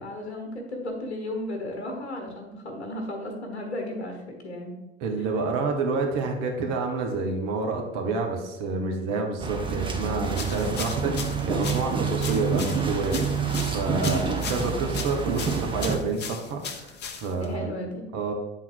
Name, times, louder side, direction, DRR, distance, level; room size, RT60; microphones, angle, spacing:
voice 1, 0.0-4.7 13.9-14.5 17.3-18.1, left 1 dB, 75° left, 3 dB, 1.2 m, -35 dB
voice 2, 5.0-11.1 11.5-17.7 18.1-18.3, right 3 dB, 50° right, 2 dB, 1.3 m, -28 dB
sound 1, 9.4-16.0, right 5 dB, 15° right, 1.1 m, -28 dB
sound 2, 10.3-17.6, left 6 dB, 30° left, 0.8 m, -38 dB
8.9 x 3.8 x 4.7 m, 1.0 s
figure-of-eight pair, 70°, 33 cm